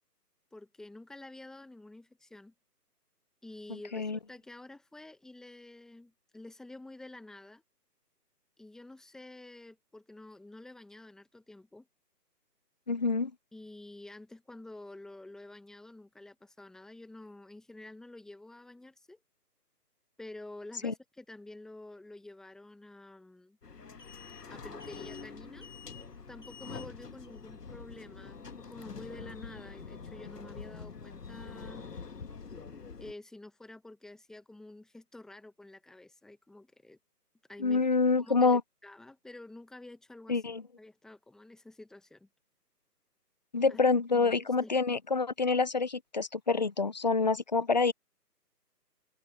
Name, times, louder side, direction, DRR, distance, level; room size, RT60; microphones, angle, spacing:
voice 1, 0.5-2.5 3.4-7.6 8.6-11.9 13.5-19.2 20.2-23.6 24.5-25.7 26.3-31.9 33.0-37.0 37.5-37.9 38.2-40.4 40.8-42.3 43.7-43.8 44.1-44.7, left 2 dB, ahead, 1.3 m, -49 dB
voice 2, 12.9-13.3 20.8-20.9 37.6-38.6 40.3-40.6 43.5-47.9, left 4 dB, 30° left, 0.6 m, -27 dB
sound 1, 23.6-33.1, left 5 dB, 75° left, 2.2 m, -45 dB
figure-of-eight pair, 150°, 48 cm